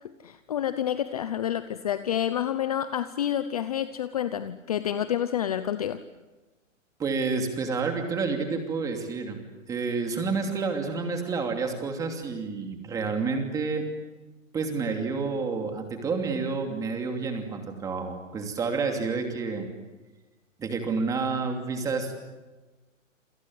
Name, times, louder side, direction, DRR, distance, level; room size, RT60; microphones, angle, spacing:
voice 1, 0.2-6.0, left 10 dB, 30° left, 13 dB, 0.8 m, -28 dB
voice 2, 7.0-9.4 9.7-13.8 14.5-19.7 20.6-22.1, right 4 dB, 10° right, 4 dB, 2.8 m, -29 dB
28.5 x 25.5 x 8.0 m, 1.2 s
hypercardioid pair, 165°, 39 cm